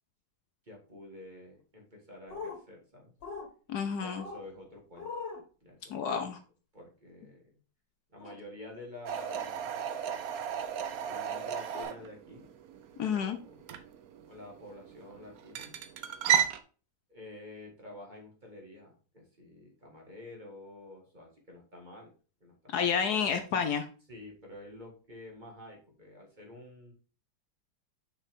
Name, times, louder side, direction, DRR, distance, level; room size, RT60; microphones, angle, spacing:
voice 1, 0.7-3.1 3.8-5.1 5.6-6.0 6.7-7.5 8.1-9.8 10.3-10.4 11.1-12.5 13.0-13.7 14.3-15.8 17.1-22.1 22.4-22.9 23.2-23.4 24.1-26.9, left 1 dB, 25° right, 0 dB, 1.8 m, -49 dB
sound 1, 2.3-2.6 3.2-3.5 4.2-4.4 5.0-5.4 6.0-6.2 8.2-8.4 9.2-9.5 10.8-10.9 11.7-11.8, left 4 dB, 85° left, 2.2 m, -41 dB
voice 2, 3.7-4.2 5.9-6.4 13.0-13.4 22.7-23.9, left 7 dB, 70° left, 8 dB, 1.2 m, -30 dB
sound 2, 9.1-16.6, right 9 dB, 65° right, 1.0 m, -34 dB
6.2 x 5.6 x 3.5 m, 0.37 s
omnidirectional pair, 1.9 m